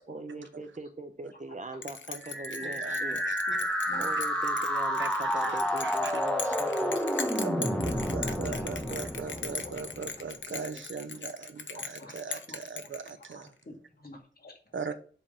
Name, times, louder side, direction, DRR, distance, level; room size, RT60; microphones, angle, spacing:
voice 1, 0.1-3.2 4.0-7.0, right 2 dB, 40° right, 8 dB, 1.0 m, -41 dB
Bell, 1.8-13.5, left 5 dB, 80° left, 0.9 m, -40 dB
sound 1, 2.2-10.1, equal, 5° left, 1.3 m, -30 dB
voice 2, 2.5-3.4 4.2-4.3 5.0-5.1 5.4-6.1 7.4-13.5 14.7-14.9, right 5 dB, 80° right, 8 dB, 0.8 m, -39 dB
voice 3, 3.5-4.1 7.7-9.0 9.3-10.0 11.7-12.6 13.2-14.7, left 2 dB, 50° left, -1 dB, 2.4 m, -48 dB
7.6 x 4.0 x 5.6 m, 0.43 s
wide cardioid pair, 105°, 19 cm